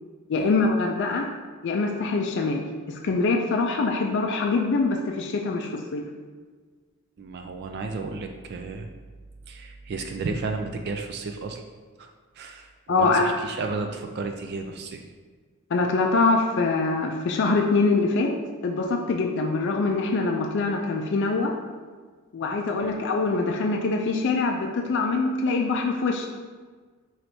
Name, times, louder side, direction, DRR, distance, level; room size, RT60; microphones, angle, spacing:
voice 1, 0.3-1.3 1.6-6.0 12.9-13.3 15.7-18.3 18.6-21.5 22.3-26.3, left 3 dB, 50° left, 1 dB, 0.4 m, -24 dB
voice 2, 7.2-8.9 9.5-11.6 12.0-12.1 12.3-15.0 22.8-23.1, right 3 dB, 45° right, 4 dB, 0.3 m, -33 dB
5.8 x 3.2 x 2.7 m, 1.5 s
head